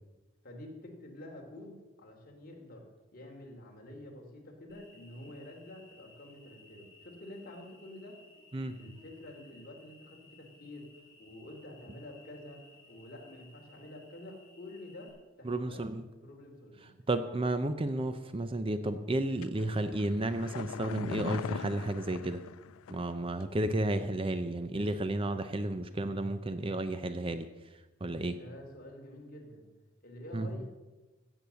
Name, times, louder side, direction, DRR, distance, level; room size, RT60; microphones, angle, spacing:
voice 1, 0.4-8.2 8.8-12.6 12.9-15.1 15.4-16.9 28.3-29.7 30.0-30.7, left 1 dB, 45° left, 0 dB, 2.8 m, -48 dB
Cricket, 4.7-15.1, left 2 dB, 15° left, 4.9 m, -59 dB
voice 2, 15.4-16.0 17.1-22.4 22.9-27.5 28.0-28.4 30.3-30.5, right 1 dB, 25° right, 10 dB, 0.5 m, -32 dB
sound 1, 19.4-23.1 23.4-23.5, left 7 dB, 90° left, 0.4 m, -41 dB
15.5 x 7.9 x 6.9 m, 1.2 s
head